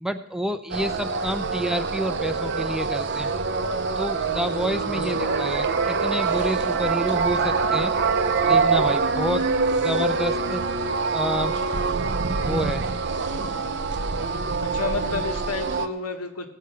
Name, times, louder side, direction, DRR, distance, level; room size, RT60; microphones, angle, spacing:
voice 1, 0.0-3.3 4.0-7.9 8.5-9.5 9.8-10.6 11.1-11.5 12.4-12.8, equal, 5° right, 9 dB, 0.5 m, -28 dB
sound 1, 0.7-15.9, right 4 dB, 50° right, 0.7 m, -25 dB
voice 2, 4.9-5.2 14.6-16.5, left 4 dB, 90° left, 5 dB, 1.4 m, -31 dB
17.5 x 6.6 x 6.8 m, 0.83 s
head